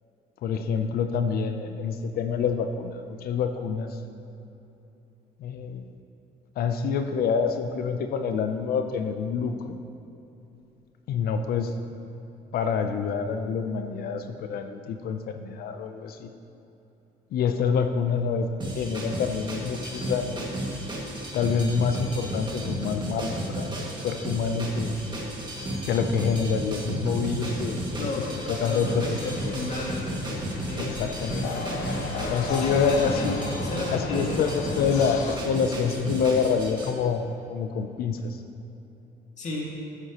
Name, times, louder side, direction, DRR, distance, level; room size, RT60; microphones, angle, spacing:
voice 1, 0.4-4.0 5.4-5.9 6.6-9.8 11.1-11.7 12.5-16.3 17.3-20.5 21.3-24.9 25.9-28.1 28.5-29.5 30.8-31.6 32.3-33.4 33.9-38.4, left 6 dB, 65° left, 7 dB, 0.6 m, -27 dB
sound 1, 18.6-36.9, right 1 dB, 25° right, 2.0 m, -33 dB
voice 2, 27.9-28.3 28.6-30.1 30.5-31.0 32.5-33.3 33.6-34.9 39.4-39.7, left 2 dB, 45° left, -3 dB, 2.1 m, -33 dB
sound 2, 28.1-35.4, left 3 dB, 85° left, 0.9 m, -36 dB
13.5 x 7.9 x 3.0 m, 2.9 s
cardioid pair, 110°, 17 cm